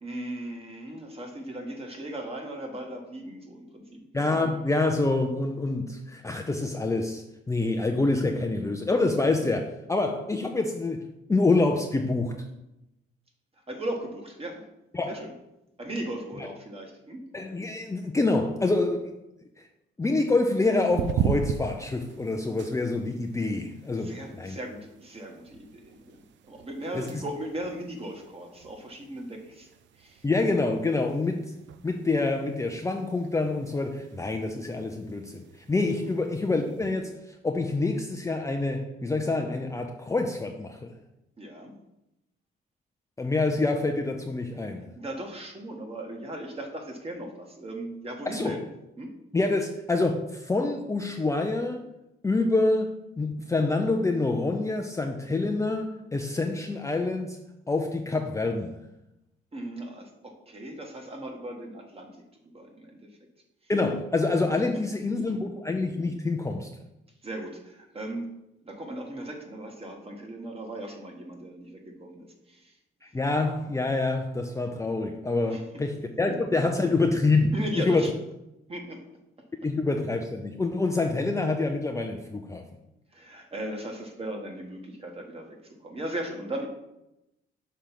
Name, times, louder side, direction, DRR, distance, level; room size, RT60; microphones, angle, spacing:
voice 1, 0.0-4.0 13.7-14.6 15.1-15.3 15.8-17.2 24.0-26.2 26.5-29.7 30.0-30.2 36.0-36.1 41.4-41.7 44.9-48.6 49.0-49.1 59.5-62.1 62.5-63.0 65.3-65.4 67.2-68.3 68.6-72.7 75.5-75.6 76.3-76.4 77.5-78.1 78.7-79.0 83.1-86.7, right 1 dB, 30° right, 2 dB, 1.4 m, -37 dB
voice 2, 4.1-12.4 14.9-15.2 16.4-16.5 17.3-19.2 20.0-24.6 26.9-27.2 30.2-31.5 31.8-37.1 37.4-40.9 43.2-44.9 48.3-48.6 49.3-51.9 52.2-57.4 57.7-58.8 63.7-66.7 73.1-78.1 79.6-82.6, left 3 dB, 15° left, 3 dB, 0.5 m, -26 dB
sound 1, 20.9-36.9, right 8 dB, 65° right, 0.5 m, -39 dB
6.2 x 3.4 x 5.8 m, 0.89 s
cardioid pair, 90°, 20 cm